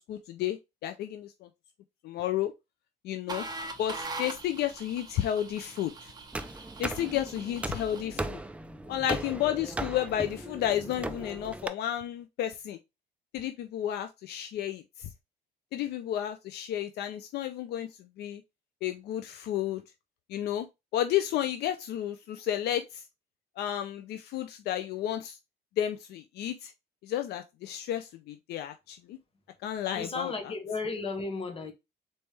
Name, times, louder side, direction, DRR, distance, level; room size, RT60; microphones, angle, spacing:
voice 1, 0.0-1.5 2.0-2.5 3.0-3.4 3.8-6.1 6.8-8.4 8.9-12.8 13.3-15.1 15.7-18.4 18.8-19.8 20.3-20.7 20.9-23.0 23.6-25.4 25.8-26.7 27.0-29.2 29.6-30.3, left 11 dB, 75° left, 0.5 m, -32 dB
sound 1, 3.3-8.1, right 3 dB, 25° right, 0.9 m, -42 dB
sound 2, 6.3-11.7, right 2 dB, 5° right, 0.4 m, -37 dB
voice 2, 29.9-31.7, left 3 dB, 35° left, 1.4 m, -34 dB
4.1 x 3.3 x 3.3 m
cardioid pair, 110°, 17 cm